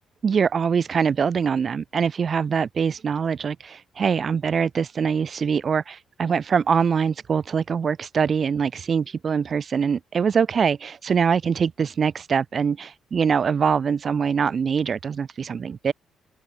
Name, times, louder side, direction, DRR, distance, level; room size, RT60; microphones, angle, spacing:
voice 1, 0.2-15.9, right 6 dB, 35° right, 2.3 m, -23 dB
open air
cardioid pair, 170°, 0 cm